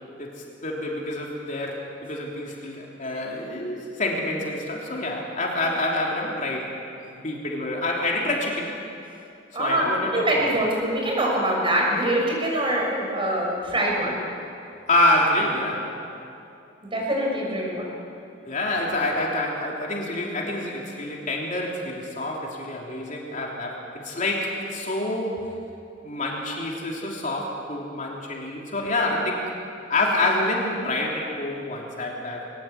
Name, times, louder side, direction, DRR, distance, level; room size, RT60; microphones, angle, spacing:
voice 1, 0.6-6.7 7.2-8.7 9.6-10.5 14.9-15.9 18.4-25.4 26.0-29.5 29.9-32.5, left 1 dB, 45° left, -1 dB, 3.2 m, -27 dB
voice 2, 9.5-14.2 16.8-17.9, right 1 dB, 30° right, -2 dB, 6.3 m, -24 dB
21.5 x 20.0 x 8.3 m, 2.7 s
head